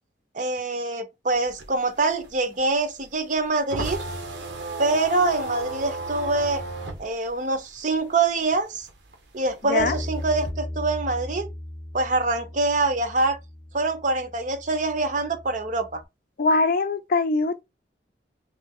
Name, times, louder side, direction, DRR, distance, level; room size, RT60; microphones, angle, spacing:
voice 1, 0.3-4.0 4.8-6.6 7.0-8.9 9.3-11.5 11.9-13.4 13.7-16.0, right 3 dB, 45° right, 0.7 m, -25 dB
sound 1, 1.3-8.4 8.7-10.5, right 2 dB, 80° right, 1.0 m, -34 dB
Bass guitar, 9.8-16.0, left 1 dB, 10° left, 0.8 m, -37 dB
voice 2, 16.4-17.6, left 3 dB, 50° left, 0.4 m, -22 dB
3.2 x 3.1 x 3.6 m
head